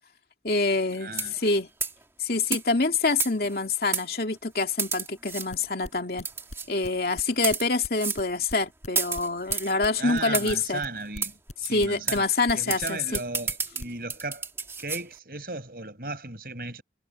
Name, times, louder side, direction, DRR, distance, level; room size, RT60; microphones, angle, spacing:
voice 1, 0.4-1.7 2.2-6.3 6.7-10.8 11.7-13.2, left 3 dB, 60° left, 2.8 m, -26 dB
voice 2, 1.0-1.3 10.0-12.3 12.5-14.4 14.8-16.8, right 3 dB, 55° right, 6.8 m, -36 dB
sound 1, 1.1-1.5 1.8-2.0 2.5-2.6 3.2-3.6 3.9-4.1 4.8-5.5 6.2-6.7 7.3-7.7 8.0-8.2 8.9-9.7 10.3-10.6 11.2-11.3 11.6-11.7 12.1-12.2 12.7-15.0, right 5 dB, 15° right, 2.1 m, -30 dB
sound 2, 5.3-8.9 9.2-12.9 13.1-13.5 13.8-14.2, left 1 dB, 40° left, 4.0 m, -40 dB
head